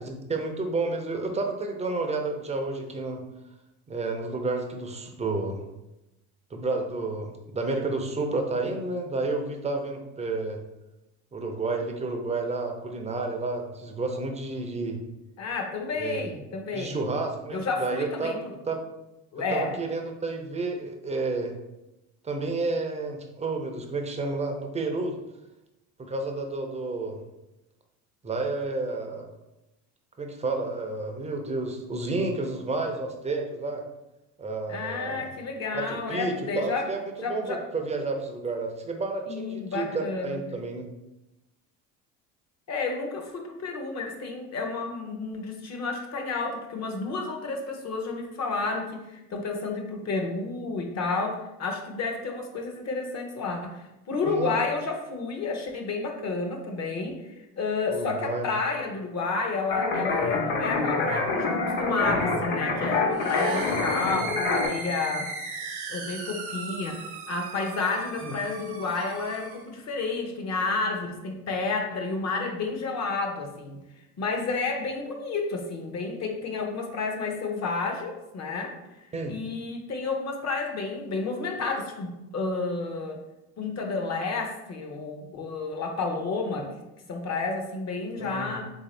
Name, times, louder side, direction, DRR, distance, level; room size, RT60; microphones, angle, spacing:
voice 1, 0.0-3.2 3.9-5.6 6.5-10.6 11.3-15.0 16.0-16.2 16.7-18.8 19.5-21.5 22.2-25.2 26.0-27.2 28.2-29.3 30.2-33.8 34.4-35.3 35.7-37.0 37.3-40.9 54.2-54.6 57.9-58.5 68.2-68.3 79.1-79.3 88.2-88.6, right 3 dB, 15° right, 3 dB, 0.5 m, -30 dB
voice 2, 15.4-17.0 17.5-18.4 19.3-19.7 34.7-36.9 37.2-37.6 39.3-40.4 42.7-65.3 65.9-73.8 74.2-78.7 79.3-83.2 83.6-86.7 87.1-88.7, left 3 dB, 40° left, 3 dB, 0.8 m, -31 dB
sound 1, 59.7-64.7, left 3 dB, 65° left, 1.1 m, -26 dB
sound 2, 63.1-69.7, right 3 dB, 65° right, 0.9 m, -37 dB
3.4 x 2.7 x 3.2 m, 0.94 s
supercardioid pair, 90°, 42 cm